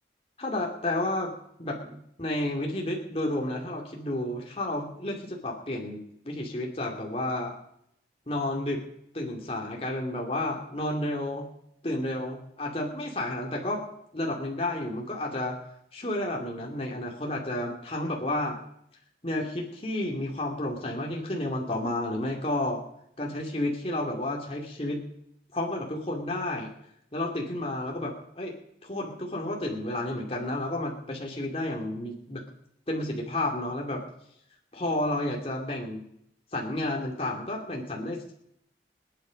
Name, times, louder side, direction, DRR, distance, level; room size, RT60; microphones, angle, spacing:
voice 1, 0.4-1.3 1.6-6.0 6.2-7.5 8.3-8.8 9.1-11.5 11.8-13.8 14.1-15.6 15.9-18.6 19.2-22.8 23.2-25.0 25.5-26.7 27.1-28.5 28.8-32.4 32.9-34.0 34.7-36.1 36.5-38.3, left 1 dB, 35° left, 0 dB, 2.6 m, -31 dB
27.5 x 9.5 x 5.2 m, 0.74 s
head